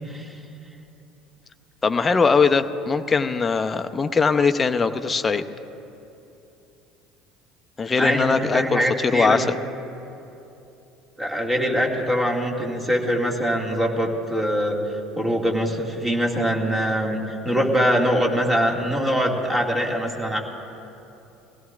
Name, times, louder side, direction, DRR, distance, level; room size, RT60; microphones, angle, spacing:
voice 1, 1.8-5.4 7.8-9.6, left 5 dB, 25° left, 8 dB, 0.7 m, -21 dB
voice 2, 8.0-9.4 11.2-14.8 15.2-20.4, equal, 15° right, 0 dB, 2.2 m, -23 dB
23.0 x 17.0 x 2.5 m, 2.9 s
hypercardioid pair, 65°, 0 cm